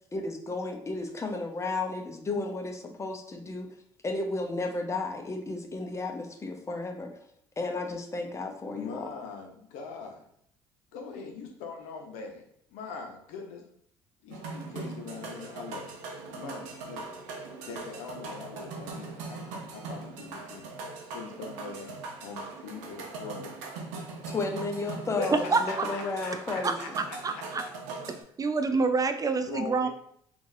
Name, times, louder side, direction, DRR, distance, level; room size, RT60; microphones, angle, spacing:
voice 1, 0.1-3.7 4.0-7.1 7.6-9.1 24.3-27.0, left 3 dB, 25° left, 4 dB, 0.7 m, -33 dB
voice 2, 8.7-10.2 10.9-12.4 12.7-13.6 14.2-16.0 16.3-17.2 17.6-20.7 21.1-21.9 22.2-23.5 24.2-24.3 25.2-27.7 29.4-29.9, left 4 dB, 75° left, 2 dB, 0.7 m, -41 dB
sound 1, 14.3-28.2, right 3 dB, 75° right, 0.7 m, -40 dB
voice 3, 25.5-25.9 26.6-27.7 28.1-29.9, right 4 dB, 30° right, 8 dB, 0.3 m, -28 dB
3.8 x 2.5 x 2.6 m, 0.67 s
hypercardioid pair, 60°, 13 cm